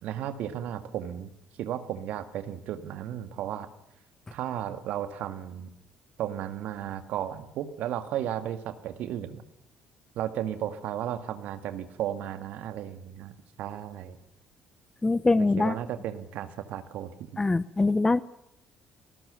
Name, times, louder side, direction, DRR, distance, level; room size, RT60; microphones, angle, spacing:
voice 1, 0.0-1.3 1.6-3.7 4.3-5.7 6.2-9.4 10.1-13.3 13.6-14.2 15.4-17.4, right 11 dB, 65° right, 9 dB, 2.1 m, -34 dB
voice 2, 15.0-15.7 17.4-18.2, left 3 dB, 20° left, 17 dB, 0.8 m, -23 dB
29.0 x 19.5 x 7.0 m, 0.87 s
figure-of-eight pair, 50°, 3 cm